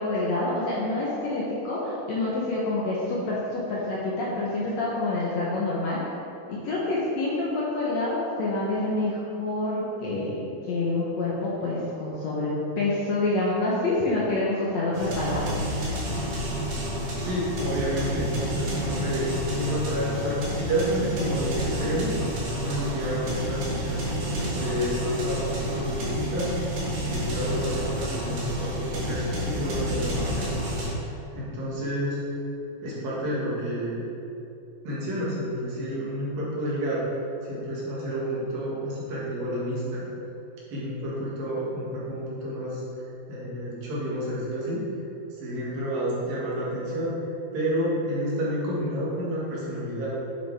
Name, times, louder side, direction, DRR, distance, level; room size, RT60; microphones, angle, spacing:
voice 1, 0.0-6.0 6.5-15.6, left 2 dB, 65° left, -6 dB, 1.9 m, -27 dB
sound 1, 14.9-30.9, equal, 55° right, 2.6 m, -30 dB
voice 2, 17.2-22.2 22.6-30.5 31.0-31.1 31.3-32.2 32.8-34.0 34.9-37.1 37.5-40.1 40.7-44.9 45.4-47.2 47.5-50.2, equal, 75° right, -7 dB, 3.6 m, -30 dB
9.4 x 6.9 x 3.5 m, 2.6 s
omnidirectional pair, 4.2 m